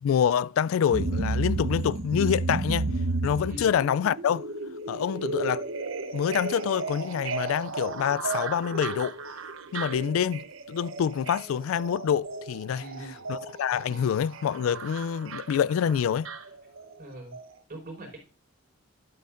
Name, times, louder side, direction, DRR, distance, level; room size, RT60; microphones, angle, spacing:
voice 1, 0.0-2.9 3.2-4.5 4.9-5.6 6.1-9.2 9.7-12.8 13.3-16.3, left 8 dB, 85° left, 0.3 m, -26 dB
sound 1, 0.9-17.0 17.3-17.4, right 3 dB, 75° right, 0.9 m, -33 dB
voice 2, 12.7-13.2 13.9-14.0 17.0-17.3 17.7-18.2, right 1 dB, 45° right, 4.7 m, -42 dB
11.5 x 8.4 x 2.5 m
head